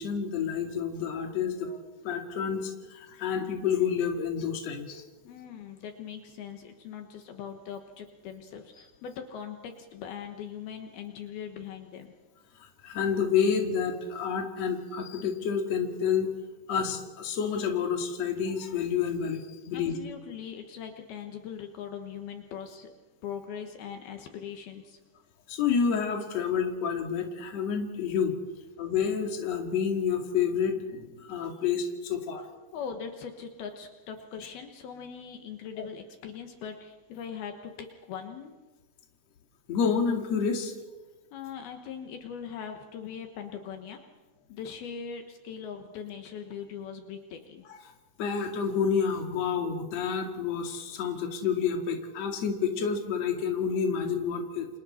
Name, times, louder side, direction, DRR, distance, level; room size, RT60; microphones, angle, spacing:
voice 1, 0.0-1.8 2.0-5.0 12.6-16.3 16.7-19.9 25.5-28.3 28.8-32.5 35.8-35.9 39.7-40.7 47.7-47.8 48.2-54.7, left 6 dB, 45° left, 3 dB, 3.0 m, -29 dB
voice 2, 5.2-12.1 19.7-22.9 23.2-25.0 32.7-38.5 41.3-44.0 44.5-47.6, left 7 dB, 70° left, 5 dB, 3.1 m, -41 dB
29.0 x 27.0 x 4.4 m, 1.2 s
omnidirectional pair, 4.6 m